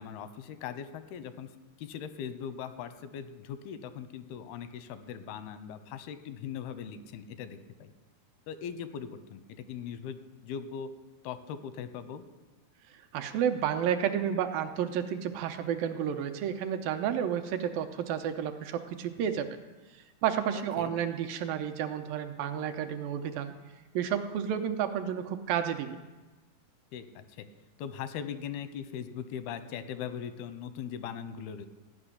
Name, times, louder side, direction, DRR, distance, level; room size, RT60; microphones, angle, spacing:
voice 1, 0.0-1.5 1.8-7.9 8.5-10.9 11.2-12.2 20.5-21.0 26.9-27.5 27.8-31.7, left 8 dB, 85° left, 11 dB, 2.8 m, -40 dB
voice 2, 13.1-19.6 19.9-23.5 23.9-26.0, right 9 dB, 80° right, 7 dB, 2.3 m, -31 dB
14.5 x 6.0 x 9.8 m, 1.2 s
omnidirectional pair, 4.3 m